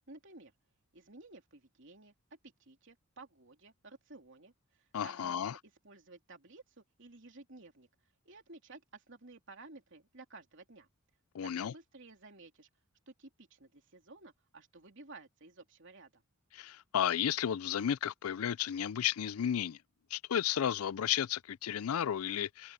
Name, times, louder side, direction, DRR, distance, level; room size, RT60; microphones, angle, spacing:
voice 1, 0.1-0.5 0.9-5.6 5.8-7.9 8.3-10.9 11.4-12.7 13.1-16.2, right 3 dB, 55° right, 3.3 m, -54 dB
voice 2, 4.9-5.6 11.3-11.7 16.5-19.8 20.1-22.7, left 9 dB, 80° left, 0.4 m, -33 dB
head